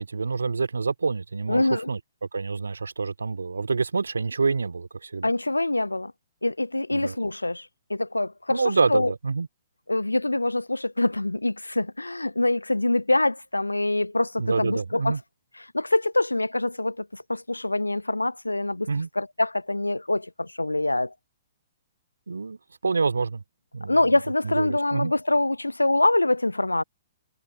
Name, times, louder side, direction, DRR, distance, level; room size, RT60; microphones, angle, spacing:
voice 1, 0.0-2.0 2.3-5.3 6.9-7.1 8.5-9.5 14.4-15.2 18.9-19.1 22.3-23.4 23.7-24.0 24.4-25.1, right 4 dB, 75° right, 2.7 m, -27 dB
voice 2, 1.5-1.9 5.2-6.1 6.4-9.1 9.9-15.2 15.7-18.9 19.2-21.1 23.9-26.8, left 2 dB, 85° left, 0.4 m, -25 dB
figure-of-eight pair, 120°, 0 cm